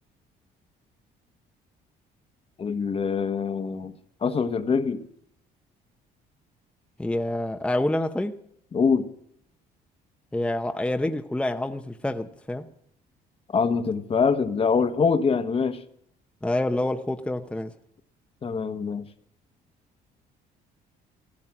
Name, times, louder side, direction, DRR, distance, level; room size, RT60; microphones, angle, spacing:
voice 1, 2.6-3.9 4.2-5.0 8.7-9.1 13.5-15.8 18.4-19.1, left 5 dB, 35° left, 1.3 m, -24 dB
voice 2, 7.0-8.3 10.3-12.7 16.4-17.7, left 1 dB, 5° left, 0.8 m, -27 dB
15.0 x 15.0 x 6.1 m
cardioid pair, 110°, 17 cm